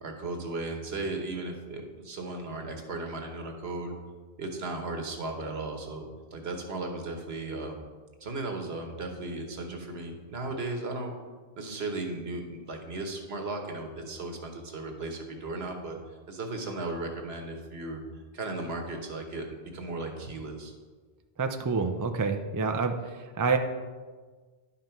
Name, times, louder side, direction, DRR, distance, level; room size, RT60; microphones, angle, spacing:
voice 1, 0.0-3.9 4.4-6.1 6.3-7.8 8.2-11.1 11.6-16.0 16.3-18.0 18.3-20.7, right 2 dB, 70° right, 3 dB, 1.4 m, -36 dB
voice 2, 21.4-23.6, right 4 dB, 35° right, 6 dB, 0.3 m, -28 dB
11.0 x 5.6 x 4.5 m, 1.4 s
omnidirectional pair, 1.1 m